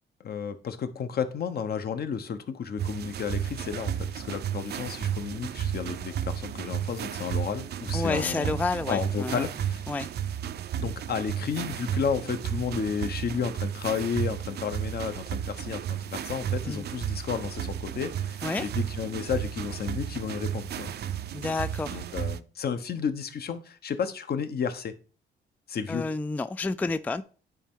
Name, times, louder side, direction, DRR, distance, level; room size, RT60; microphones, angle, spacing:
voice 1, 0.2-9.8 10.8-20.9 21.9-24.9 25.7-26.1, left 6 dB, 50° left, 0.9 m, -32 dB
sound 1, 2.8-22.4, right 9 dB, 55° right, 0.5 m, -33 dB
voice 2, 7.9-9.5 9.9-10.1 16.7-16.8 18.4-18.7 21.3-22.0 25.9-27.2, left 3 dB, 10° left, 0.3 m, -30 dB
10.0 x 4.4 x 3.7 m
cardioid pair, 90°, 20 cm